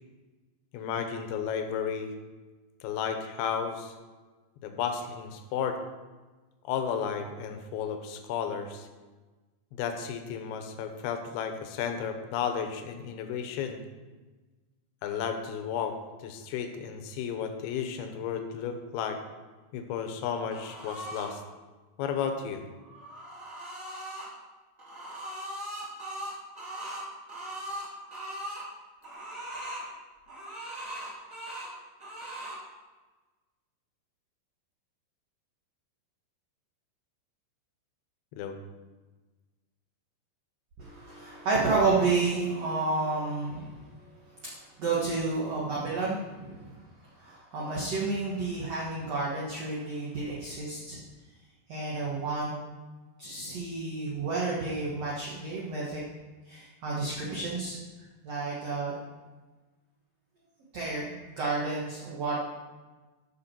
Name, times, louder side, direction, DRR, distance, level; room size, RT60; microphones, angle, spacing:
voice 1, 0.7-2.1 2.8-4.0 4.6-5.8 6.7-8.9 9.8-13.8 15.0-19.2 19.7-21.4 22.0-22.6 38.3-38.6, left 7 dB, 75° left, 6 dB, 2.7 m, -33 dB
sound 1, 20.5-21.3 22.7-24.3 24.8-28.6 29.0-29.9 30.3-31.7 32.0-32.6, right 1 dB, 10° right, 2.6 m, -39 dB
voice 2, 40.8-43.8 44.8-46.7 47.2-51.0 51.7-52.5 53.2-56.0 56.5-57.8 58.2-58.9 60.7-62.4, right 3 dB, 65° right, -5 dB, 1.6 m, -30 dB
14.0 x 6.0 x 4.5 m, 1.3 s
omnidirectional pair, 5.0 m